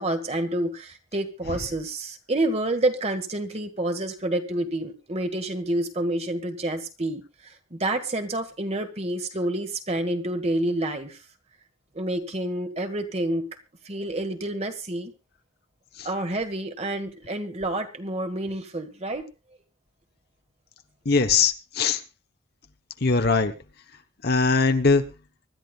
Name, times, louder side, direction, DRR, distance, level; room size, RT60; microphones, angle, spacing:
voice 1, 0.0-11.2 11.9-13.4 13.8-15.1 16.0-19.3, right 1 dB, 35° right, 6 dB, 1.6 m, -28 dB
voice 2, 21.0-22.0 23.0-23.5 24.2-25.0, left 4 dB, 55° left, 7 dB, 1.0 m, -21 dB
25.0 x 12.5 x 2.4 m, 0.29 s
head